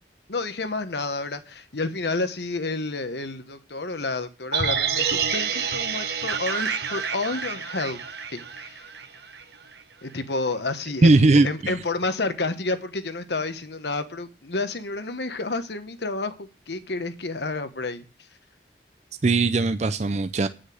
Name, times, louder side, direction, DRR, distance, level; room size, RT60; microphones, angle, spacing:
voice 1, 0.3-8.0 8.3-8.8 10.0-18.0, left 3 dB, 70° left, 1.2 m, -30 dB
sound 1, 4.5-8.7 9.0-9.1, right 7 dB, 65° right, 1.4 m, -28 dB
sound 2, 6.3-10.2, right 5 dB, 85° right, 1.0 m, -33 dB
voice 2, 11.0-11.7 19.2-20.5, right 3 dB, 40° right, 0.5 m, -19 dB
9.8 x 6.4 x 7.6 m
head